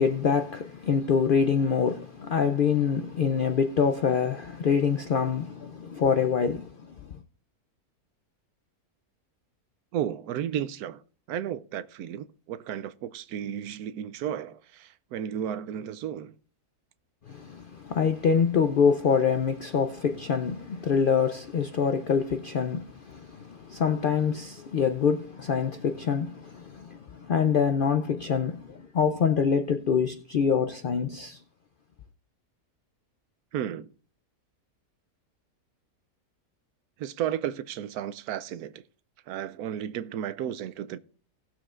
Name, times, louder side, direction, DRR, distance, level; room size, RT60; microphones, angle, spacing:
voice 1, 0.0-6.9 17.3-31.4, left 6 dB, 85° left, 0.4 m, -25 dB
voice 2, 9.9-11.0 11.3-16.3 33.5-33.9 37.0-38.8 39.3-41.0, right 10 dB, 85° right, 1.1 m, -33 dB
18.5 x 7.1 x 2.4 m
omnidirectional pair, 1.6 m